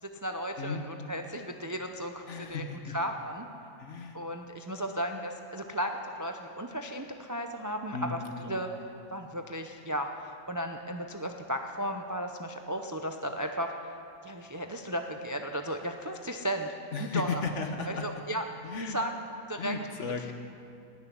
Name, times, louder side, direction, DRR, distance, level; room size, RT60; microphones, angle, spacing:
voice 1, 0.0-3.5 4.1-8.2 8.5-8.7 9.1-13.7 14.2-16.7 17.0-17.5 17.9-18.4 18.9-19.1 19.5-19.8 20.1-20.3, equal, 30° right, 4 dB, 0.3 m, -35 dB
voice 2, 2.3-3.0 3.8-4.2 7.9-8.2 8.4-8.6 16.9-18.0 18.6-19.0 19.6-20.3, left 4 dB, 55° left, 5 dB, 1.4 m, -35 dB
17.0 x 7.0 x 10.0 m, 2.5 s
omnidirectional pair, 1.6 m